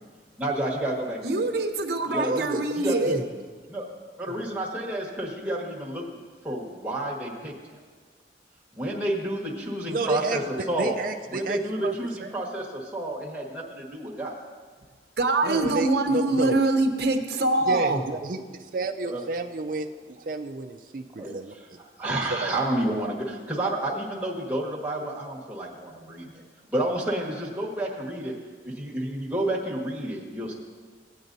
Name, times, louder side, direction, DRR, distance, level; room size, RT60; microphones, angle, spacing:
voice 1, 0.4-1.5 2.1-3.2 3.7-3.9 4.2-6.0 6.4-7.5 8.7-10.9 11.3-14.4 19.0-19.2 21.2-26.4 26.7-28.3 28.6-30.5, right 1 dB, 10° right, -4 dB, 1.4 m, -30 dB
voice 2, 1.2-3.2 15.2-18.0, right 2 dB, 65° right, 7 dB, 0.9 m, -24 dB
voice 3, 2.1-2.6 3.0-3.2 9.9-10.4 10.8-12.0 12.2-12.3 15.4-16.6 17.7-21.5 22.3-22.5, right 3 dB, 50° right, 3 dB, 0.4 m, -30 dB
17.0 x 8.9 x 2.7 m, 1.5 s
head